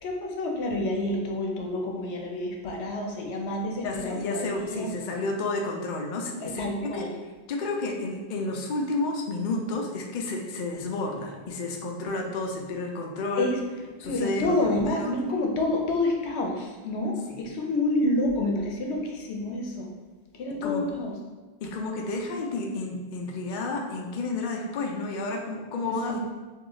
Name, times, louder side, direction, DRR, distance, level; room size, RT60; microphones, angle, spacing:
voice 1, 0.0-4.9 6.4-7.1 13.4-13.6 14.0-19.9 20.4-21.1 26.1-26.2, left 2 dB, 85° left, 1 dB, 0.9 m, -28 dB
voice 2, 3.8-7.1 7.5-13.5 14.0-14.5 14.9-15.1 17.3-17.4 20.6-20.9 21.6-26.2, left 2 dB, 60° left, 1 dB, 0.6 m, -31 dB
3.0 x 2.8 x 3.8 m, 1.3 s
omnidirectional pair, 1.1 m